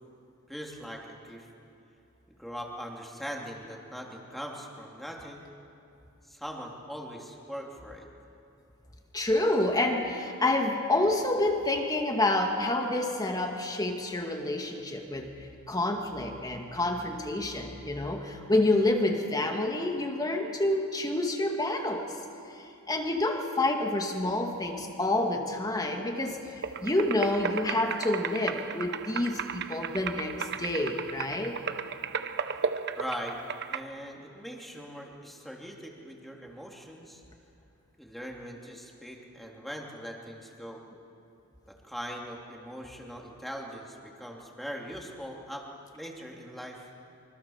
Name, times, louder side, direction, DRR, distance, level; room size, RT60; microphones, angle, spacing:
voice 1, 0.5-1.5 2.4-5.5 6.3-8.1 33.0-33.4 33.7-37.2 38.0-40.8 41.7-45.7 45.9-46.9, equal, ahead, -1 dB, 3.0 m, -41 dB
voice 2, 9.1-15.3 15.7-22.1 22.9-31.6, left 2 dB, 20° left, 3 dB, 2.3 m, -28 dB
sound 1, 26.6-33.8, right 6 dB, 50° right, 0.9 m, -35 dB
26.0 x 25.0 x 7.3 m, 2.7 s
head